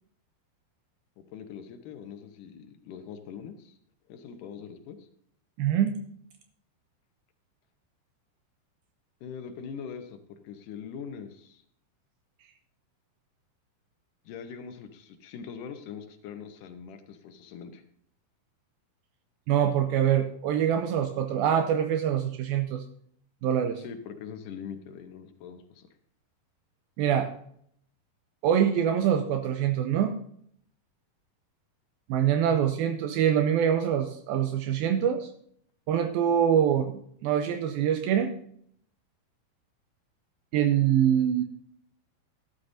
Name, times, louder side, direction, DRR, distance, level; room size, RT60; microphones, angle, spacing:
voice 1, 1.2-3.8 4.1-5.1 9.2-11.6 14.3-17.8 23.8-25.9, left 7 dB, 70° left, 7 dB, 2.1 m, -42 dB
voice 2, 5.6-5.9 19.5-22.8 23.4-23.8 27.0-27.3 28.4-30.1 32.1-35.3 35.9-38.3 40.5-41.4, right 9 dB, 80° right, 7 dB, 2.3 m, -24 dB
13.0 x 11.5 x 2.7 m, 0.66 s
omnidirectional pair, 4.6 m